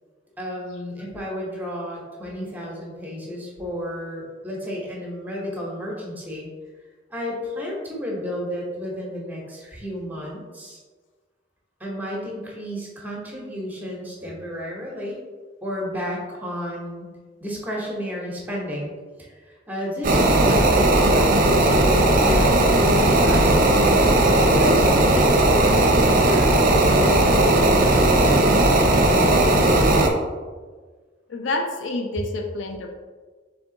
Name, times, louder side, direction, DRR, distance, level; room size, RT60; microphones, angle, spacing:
voice 1, 0.4-6.5 7.1-10.8 11.8-15.2 15.6-17.1 17.4-18.9 19.2-23.7 24.5-30.0, equal, 10° right, -3 dB, 0.9 m, -32 dB
sound 1, 20.0-30.1, right 1 dB, 45° right, 0.6 m, -17 dB
voice 2, 31.3-32.9, left 2 dB, 75° left, 3 dB, 0.5 m, -28 dB
3.6 x 3.4 x 3.8 m, 1.4 s
head